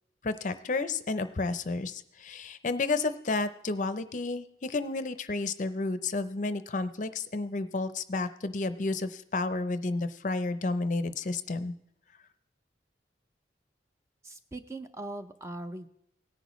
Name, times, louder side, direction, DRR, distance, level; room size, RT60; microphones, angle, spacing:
voice 1, 0.2-11.7, left 3 dB, 45° left, 12 dB, 0.5 m, -31 dB
voice 2, 14.2-15.9, right 2 dB, 15° right, 8 dB, 0.5 m, -40 dB
17.5 x 10.0 x 3.1 m, 0.78 s
head